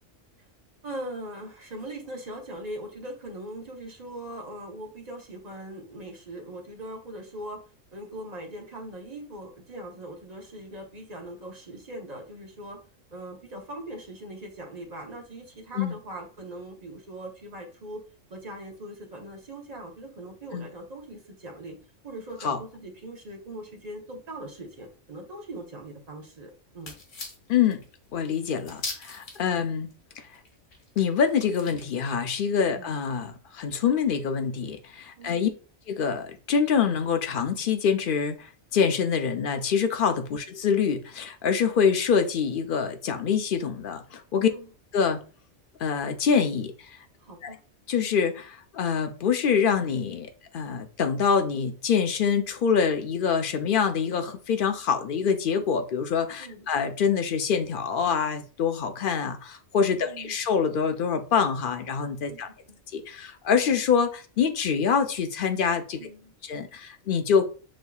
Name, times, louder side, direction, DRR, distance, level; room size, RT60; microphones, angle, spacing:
voice 1, 0.8-7.6 7.9-12.8 13.1-18.0 18.3-21.8 22.0-27.0 29.4-29.6 32.7-32.9 35.2-35.5 40.0-40.2 44.3-44.7 47.2-47.6 56.4-56.7 60.0-60.3 62.3-62.4 62.7-62.8 66.0-66.3, right 1 dB, 35° right, 0.9 m, -40 dB
sound 1, 26.8-29.6 29.9-30.0 30.2-32.1, left 3 dB, 90° left, 1.5 m, -40 dB
voice 2, 27.5-27.8 28.1-29.9 31.0-35.5 35.9-44.5 44.9-45.2 45.8-46.9 47.4-47.5 47.9-50.3 50.5-62.5 62.9-66.0 66.4-67.4, left 6 dB, 60° left, 0.6 m, -25 dB
6.3 x 2.7 x 2.3 m
omnidirectional pair, 1.3 m